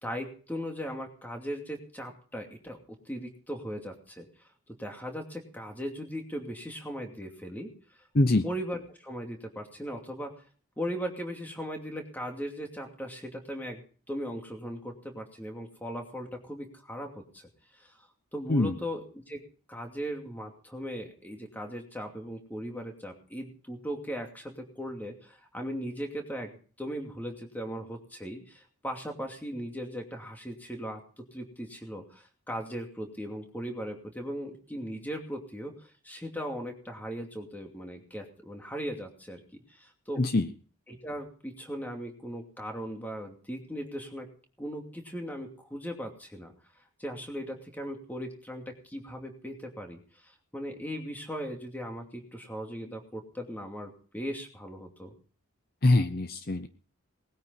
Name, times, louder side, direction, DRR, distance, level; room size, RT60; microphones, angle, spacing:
voice 1, 0.0-2.8 3.0-4.3 4.8-7.7 8.4-10.3 10.8-13.8 14.1-17.9 18.3-19.4 19.7-40.2 40.9-44.3 44.6-46.5 47.0-55.1, equal, 10° left, 3 dB, 2.5 m, -38 dB
voice 2, 8.1-8.5 18.5-18.8 40.2-40.5 55.8-56.7, left 2 dB, 45° left, 10 dB, 0.7 m, -23 dB
20.0 x 9.5 x 5.7 m, 0.42 s
head